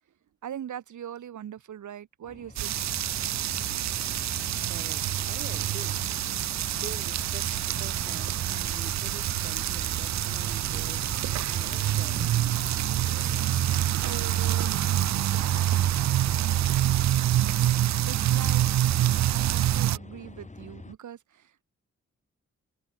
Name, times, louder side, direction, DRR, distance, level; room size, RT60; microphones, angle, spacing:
voice 1, 0.4-2.7 14.0-15.0 18.1-18.9 19.3-21.6, right 10 dB, 85° right, 3.3 m, -40 dB
sound 1, 2.2-20.9, left 2 dB, 25° left, 4.5 m, -45 dB
sound 2, 2.6-20.0, right 12 dB, 70° right, 0.5 m, -26 dB
voice 2, 4.7-6.0 6.7-7.5 7.8-12.4, right 4 dB, 35° right, 5.4 m, -45 dB
cardioid pair, 60°, 29 cm